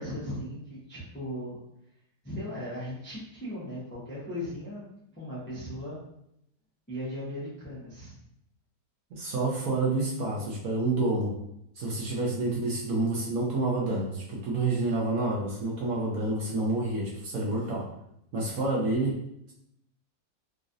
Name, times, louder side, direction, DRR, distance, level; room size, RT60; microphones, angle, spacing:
voice 1, 0.0-1.6 2.2-4.8 5.1-6.0 6.9-8.1, equal, 10° left, -7 dB, 0.5 m, -37 dB
voice 2, 9.1-11.3 11.7-17.8 18.3-19.2, right 2 dB, 65° right, -4 dB, 1.0 m, -28 dB
4.0 x 2.5 x 2.5 m, 0.77 s
omnidirectional pair, 1.9 m